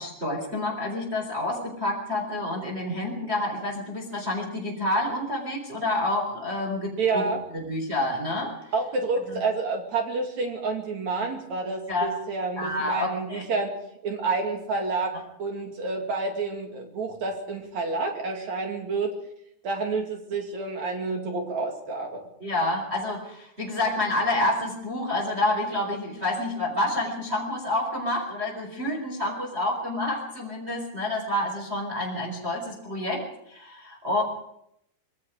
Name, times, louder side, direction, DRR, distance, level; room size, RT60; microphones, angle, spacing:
voice 1, 0.0-7.2 7.5-8.7 9.3-9.4 11.9-12.1 12.6-13.4 22.4-33.2 33.5-34.2, left 1 dB, 15° right, -1 dB, 4.2 m, -28 dB
voice 2, 7.0-7.4 8.7-13.7 14.0-19.1 19.6-22.2, right 3 dB, 50° right, 3 dB, 3.6 m, -29 dB
25.5 x 21.0 x 5.0 m, 0.76 s
omnidirectional pair, 4.7 m